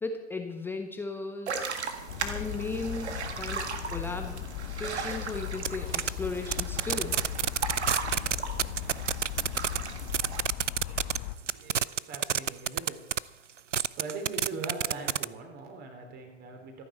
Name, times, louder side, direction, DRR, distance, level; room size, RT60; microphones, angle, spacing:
voice 1, 0.0-1.8 2.2-7.2, left 3 dB, 5° left, 5 dB, 0.7 m, -36 dB
sound 1, 1.5-10.4, right 5 dB, 65° right, 1.8 m, -37 dB
sound 2, 2.1-11.4, left 12 dB, 35° left, 0.9 m, -38 dB
sound 3, 5.6-5.7 5.9-6.1 6.5-9.8 10.1-11.2 11.5-13.2 13.7-15.2, right 8 dB, 85° right, 0.5 m, -27 dB
voice 2, 10.8-13.1 13.8-16.8, right 4 dB, 25° right, 4 dB, 3.3 m, -41 dB
26.0 x 9.5 x 4.3 m, 1.0 s
figure-of-eight pair, 105°, 36 cm